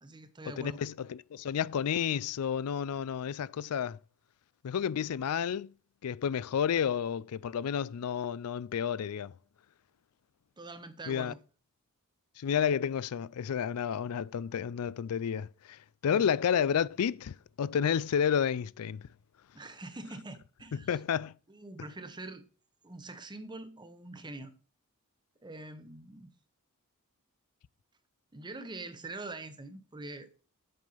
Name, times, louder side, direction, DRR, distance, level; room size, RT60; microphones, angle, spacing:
voice 1, 0.0-0.8 10.6-11.4 16.1-16.3 19.5-21.0 21.5-22.5 22.8-24.5 25.4-26.3 28.3-30.3, right 2 dB, 20° right, 0.9 m, -44 dB
voice 2, 0.6-4.0 4.6-5.7 6.0-9.3 11.1-11.3 12.4-19.0 20.9-21.3, left 8 dB, 75° left, 0.4 m, -31 dB
7.7 x 5.3 x 5.6 m
head